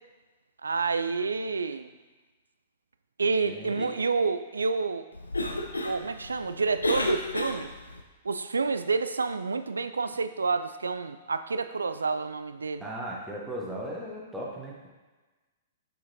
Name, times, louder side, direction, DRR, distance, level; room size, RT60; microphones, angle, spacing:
voice 1, 0.6-1.9 3.2-5.1 5.8-7.7 8.2-12.8, right 4 dB, 75° right, 11 dB, 0.3 m, -29 dB
voice 2, 3.4-3.9 12.8-14.9, right 1 dB, 5° right, -4 dB, 1.1 m, -37 dB
Cough, 5.1-8.0, left 1 dB, 80° left, 0.6 m, -32 dB
6.0 x 5.7 x 2.7 m, 1.2 s
figure-of-eight pair, 110°, 0 cm